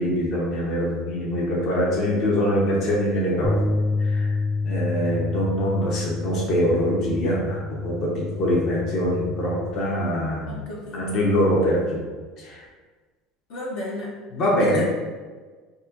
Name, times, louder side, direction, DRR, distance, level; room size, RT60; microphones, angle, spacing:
voice 1, 0.0-3.6 4.0-4.3 4.6-10.6 10.9-12.0 12.4-12.6 14.3-14.8, equal, 50° left, -4 dB, 1.0 m, -23 dB
sound 1, 3.4-9.7, left 3 dB, ahead, 0.3 m, -28 dB
voice 2, 10.4-11.2 13.5-14.1 14.6-14.8, left 1 dB, 75° left, -5 dB, 1.0 m, -33 dB
4.3 x 2.5 x 2.6 m, 1.4 s
supercardioid pair, 110°, 0 cm